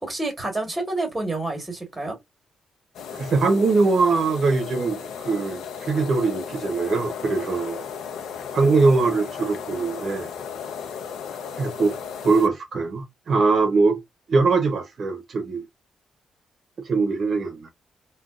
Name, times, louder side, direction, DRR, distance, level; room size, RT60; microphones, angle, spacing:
voice 1, 0.0-2.2, right 2 dB, 10° right, 1.3 m, -28 dB
sound 1, 2.9-12.5, left 7 dB, 90° left, 0.5 m, -35 dB
voice 2, 3.1-7.8 8.5-10.3 11.6-12.0 12.2-14.0 14.3-15.6 16.8-17.7, right 4 dB, 45° right, 0.7 m, -22 dB
3.7 x 2.3 x 2.3 m
cardioid pair, 135°, 0 cm